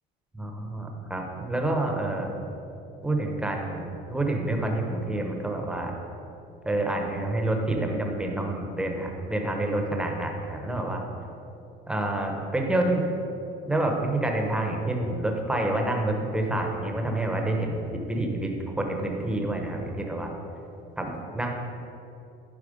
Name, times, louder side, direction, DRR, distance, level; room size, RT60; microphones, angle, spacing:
voice 1, 0.3-2.3 3.0-5.9 6.6-11.0 11.9-13.1 13.7-20.3 21.0-21.5, right 1 dB, 5° right, 2 dB, 0.9 m, -28 dB
11.0 x 4.5 x 5.1 m, 2.8 s
cardioid pair, 135°, 18 cm